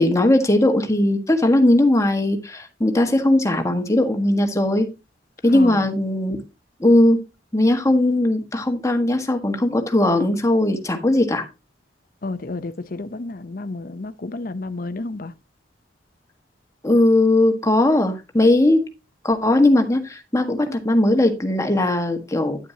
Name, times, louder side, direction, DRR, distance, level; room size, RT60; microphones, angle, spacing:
voice 1, 0.0-4.9 5.4-6.4 6.8-7.2 7.5-11.5 16.8-18.8 19.2-22.6, left 1 dB, 15° left, 1.5 m, -18 dB
voice 2, 5.5-5.9 12.2-15.3, left 2 dB, 50° left, 0.7 m, -31 dB
9.7 x 9.2 x 2.9 m
head